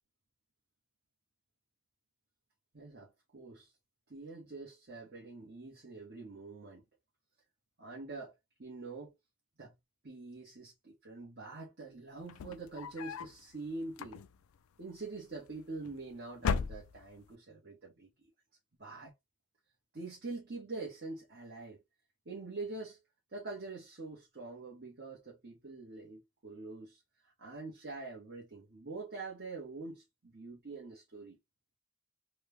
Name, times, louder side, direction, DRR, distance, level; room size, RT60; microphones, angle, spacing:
voice 1, 2.7-3.7 4.1-6.8 7.8-8.3 8.6-9.1 9.6-9.7 10.0-14.2 14.8-18.1 18.8-19.1 19.9-21.8 22.3-23.0 23.3-31.4, right 3 dB, 50° right, 1.0 m, -45 dB
sound 1, 12.2-13.4 13.9-14.6 15.5-16.0 16.3-17.3, left 6 dB, 80° left, 0.3 m, -36 dB
3.1 x 2.1 x 3.4 m
head